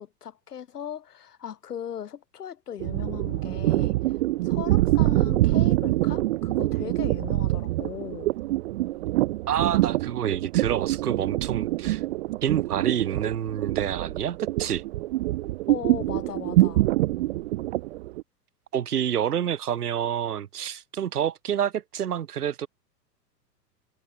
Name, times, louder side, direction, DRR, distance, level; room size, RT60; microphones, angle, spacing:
voice 1, 0.0-4.2 4.4-8.3 15.7-16.8, left 9 dB, 65° left, 3.2 m, -38 dB
sound 1, 2.8-18.2, right 17 dB, 45° right, 0.6 m, -25 dB
voice 2, 9.5-12.0 12.4-14.8 18.7-22.7, right 9 dB, 65° right, 2.9 m, -28 dB
figure-of-eight pair, 100°, 49 cm